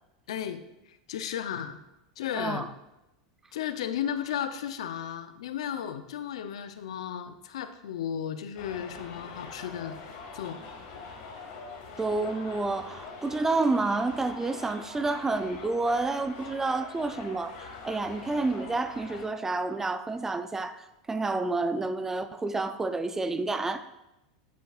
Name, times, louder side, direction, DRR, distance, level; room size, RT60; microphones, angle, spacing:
voice 1, 0.3-0.6 0.9-1.8 2.2-2.7 3.5-10.0 10.3-10.6, left 9 dB, 75° left, 0.6 m, -34 dB
voice 2, 2.3-2.7 12.0-23.9, right 3 dB, 15° right, 0.5 m, -29 dB
sound 1, 8.6-19.3, left 4 dB, 55° left, 1.8 m, -44 dB
8.4 x 7.6 x 2.4 m
hypercardioid pair, 105°, 3 cm